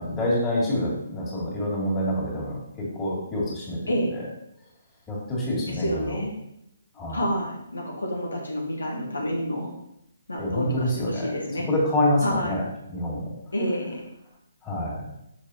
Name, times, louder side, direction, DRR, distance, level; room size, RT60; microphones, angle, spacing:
voice 1, 0.0-3.8 5.1-6.2 6.9-7.2 10.4-11.3 11.7-12.6 12.9-13.3 14.6-15.0, left 1 dB, 15° left, -6 dB, 2.2 m, -26 dB
voice 2, 5.7-6.3 7.1-9.7 10.3-11.7 12.2-12.5 13.5-14.0, equal, 80° left, -1 dB, 1.2 m, -29 dB
6.7 x 5.2 x 2.8 m, 0.81 s
figure-of-eight pair, 135°, 0 cm